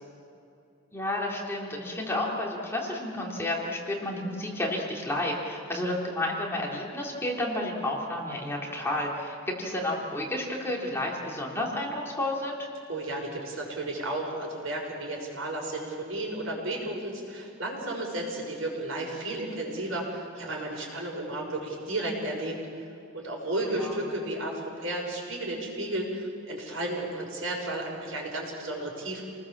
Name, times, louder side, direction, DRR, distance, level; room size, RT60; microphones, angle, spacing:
voice 1, 0.9-12.5 23.6-24.0, left 1 dB, 10° left, -2 dB, 3.4 m, -31 dB
voice 2, 12.9-22.6 23.1-29.2, right 1 dB, 80° right, -1 dB, 6.3 m, -33 dB
29.0 x 20.0 x 7.4 m, 2.5 s
head